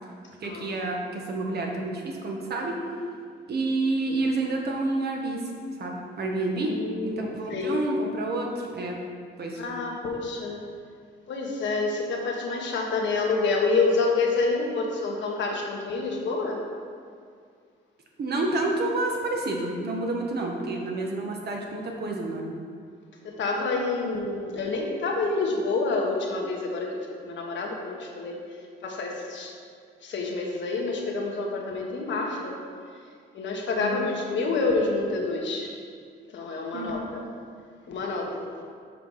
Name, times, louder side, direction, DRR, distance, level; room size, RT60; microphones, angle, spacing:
voice 1, 0.4-2.8 3.5-5.5 5.8-6.7 7.0-9.0 9.4-9.6 18.2-22.5 33.8-34.1 36.7-37.0, right 2 dB, 55° right, 0 dB, 1.4 m, -29 dB
voice 2, 6.5-7.7 9.6-10.6 11.3-16.6 23.2-28.4 28.8-29.5 30.0-32.6 33.3-35.7 36.3-37.2 37.9-38.5, left 3 dB, 65° left, 0 dB, 1.4 m, -28 dB
6.6 x 5.0 x 5.5 m, 2.1 s
cardioid pair, 90°, 20 cm